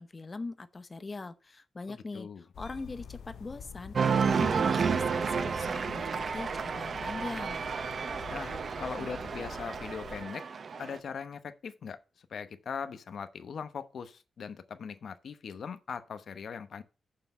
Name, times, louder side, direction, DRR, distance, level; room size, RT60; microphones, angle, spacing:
voice 1, 0.0-2.3 2.6-7.6, left 3 dB, 30° left, 0.9 m, -41 dB
voice 2, 1.9-2.4 8.3-10.4 10.8-16.8, left 6 dB, 70° left, 1.0 m, -40 dB
sound 1, 2.5-10.2, left 7 dB, 90° left, 0.7 m, -47 dB
Cheering, 3.9-11.0, right 6 dB, 55° right, 0.7 m, -31 dB
6.8 x 5.9 x 6.6 m
wide cardioid pair, 110°, 0 cm